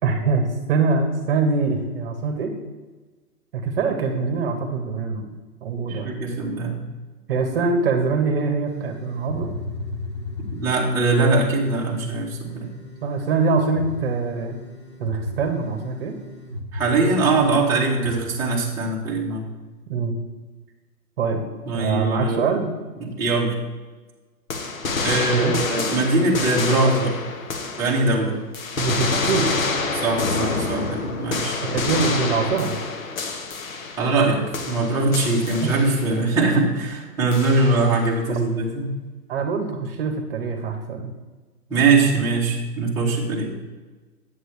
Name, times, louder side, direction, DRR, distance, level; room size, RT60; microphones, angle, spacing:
voice 1, 0.0-2.5 3.5-5.3 5.6-6.2 7.3-9.5 13.0-14.5 15.0-16.2 19.9-20.1 21.2-21.4 21.7-22.7 25.3-25.6 28.8-29.5 31.6-32.8 35.6-36.2 39.3-41.1, right 4 dB, 35° right, 4 dB, 1.1 m, -24 dB
voice 2, 5.9-6.8 10.5-12.7 16.7-19.5 21.7-22.4 23.0-23.6 25.0-27.2 27.8-28.4 29.9-31.6 34.0-38.9 41.7-43.5, right 3 dB, 5° right, -7 dB, 1.1 m, -22 dB
sound 1, 8.7-18.1, left 2 dB, 20° left, 0.4 m, -37 dB
sound 2, 24.5-28.2 28.5-34.3 34.5-36.2 37.3-38.0, left 3 dB, 60° left, 1.3 m, -27 dB
7.9 x 7.8 x 3.2 m, 1.3 s
hypercardioid pair, 145°, 47 cm